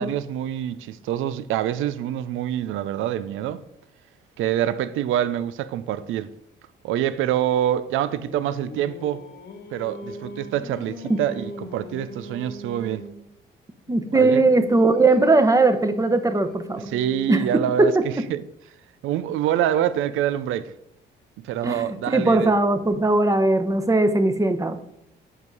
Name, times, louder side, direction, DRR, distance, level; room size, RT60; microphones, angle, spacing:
voice 1, 0.0-3.6 4.4-6.3 6.8-9.2 9.7-13.1 14.1-14.4 16.9-18.4 19.0-20.7 21.4-22.5, right 11 dB, 85° right, 0.5 m, -26 dB
Singing, 7.8-13.3 13.9-17.7, left 2 dB, 55° left, 1.2 m, -40 dB
voice 2, 13.9-16.9 17.3-17.5 17.8-18.0 21.6-24.8, right 2 dB, 15° right, 0.9 m, -19 dB
8.0 x 5.4 x 4.7 m
cardioid pair, 90°, 20 cm